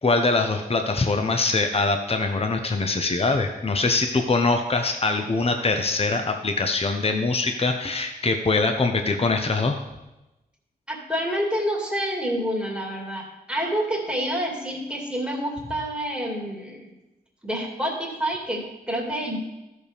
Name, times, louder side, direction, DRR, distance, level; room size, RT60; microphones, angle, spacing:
voice 1, 0.0-9.8, left 3 dB, 35° left, 5 dB, 0.8 m, -23 dB
voice 2, 10.9-16.9 17.4-19.4, equal, 5° right, -2 dB, 2.4 m, -28 dB
13.5 x 6.5 x 3.5 m, 0.99 s
cardioid pair, 60°, 17 cm